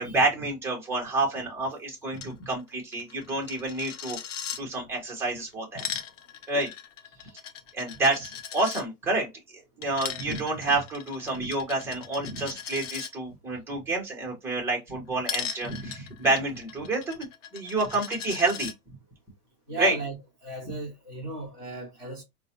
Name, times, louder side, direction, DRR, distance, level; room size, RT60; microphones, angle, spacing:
voice 1, 0.0-4.2 4.6-5.9 6.5-6.7 7.7-17.3 17.5-18.7 19.8-20.0, right 2 dB, 5° right, 0.7 m, -28 dB
Coin (dropping), 2.1-2.3 2.6-2.7 2.9-4.6 5.5-8.8 9.8-13.1 15.3-18.7, left 8 dB, 55° left, 0.6 m, -38 dB
voice 2, 19.7-20.2 20.4-22.2, right 2 dB, 15° left, 0.3 m, -36 dB
3.8 x 2.2 x 2.7 m
hypercardioid pair, 155°, 45 cm